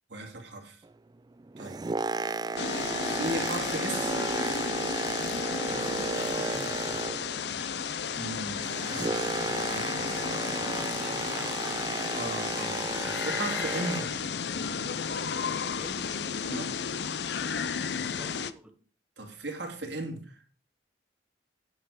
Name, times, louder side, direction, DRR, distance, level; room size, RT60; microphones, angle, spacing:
voice 1, 0.1-0.8 1.6-1.8 3.0-4.2 8.1-8.7 9.7-10.3 12.1-14.1 16.5-16.7 19.2-20.4, right 2 dB, 80° right, 2.4 m, -37 dB
Boat Water vehicle, 1.4-7.5 7.8-14.3 14.9-15.0, right 3 dB, 25° right, 0.4 m, -34 dB
sound 1, 2.6-18.5, left 6 dB, 65° left, 0.6 m, -33 dB
voice 2, 5.7-7.1 7.6-7.9 10.8-11.9 15.8-16.2 17.3-18.8, right 1 dB, 5° right, 0.8 m, -47 dB
9.5 x 6.6 x 5.0 m
head